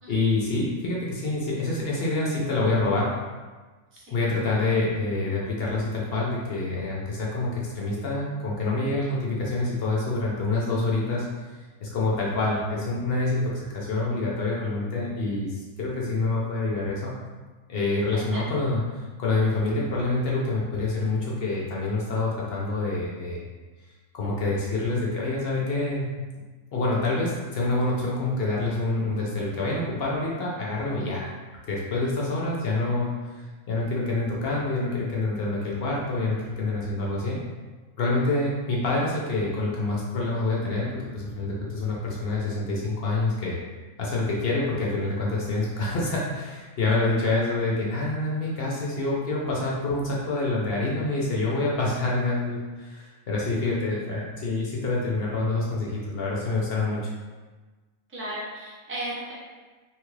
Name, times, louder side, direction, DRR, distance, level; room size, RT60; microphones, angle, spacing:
voice 1, 0.1-3.1 4.1-11.2 11.8-17.1 17.7-23.4 24.1-26.1 26.7-31.3 31.7-37.4 38.0-43.6 44.0-57.1, left 2 dB, 55° left, -4 dB, 0.7 m, -27 dB
voice 2, 18.1-18.5 53.7-54.0 58.1-59.3, right 1 dB, 15° right, -6 dB, 0.4 m, -36 dB
3.2 x 2.3 x 3.1 m, 1.3 s
omnidirectional pair, 1.4 m